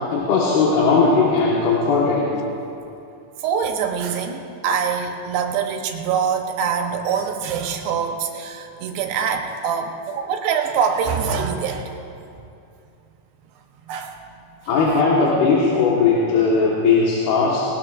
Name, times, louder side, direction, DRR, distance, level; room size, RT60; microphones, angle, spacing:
voice 1, 0.1-2.3 14.7-17.7, left 4 dB, 65° left, -5 dB, 3.2 m, -18 dB
voice 2, 3.4-11.9 13.9-14.2, right 6 dB, 75° right, 4 dB, 2.9 m, -24 dB
20.5 x 18.5 x 2.5 m, 2.7 s
omnidirectional pair, 5.4 m